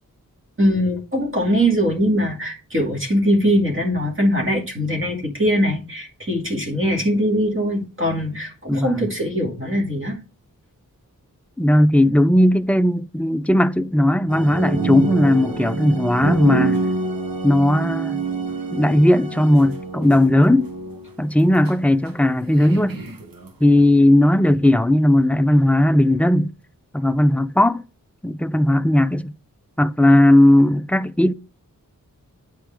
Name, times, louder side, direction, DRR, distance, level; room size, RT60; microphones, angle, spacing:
voice 1, 0.6-10.2, equal, 35° right, 2.3 m, -21 dB
voice 2, 8.7-9.1 11.6-16.8 17.4-18.2 18.7-20.7 21.2-23.0 23.6-26.5 26.9-27.8 28.2-29.3 29.8-31.3, left 1 dB, 5° left, 0.4 m, -17 dB
sound 1, 14.3-21.2 21.6-21.7 22.1-22.2 22.5-23.5, right 4 dB, 90° right, 1.2 m, -27 dB
9.1 x 4.9 x 3.5 m
wide cardioid pair, 105°, 34 cm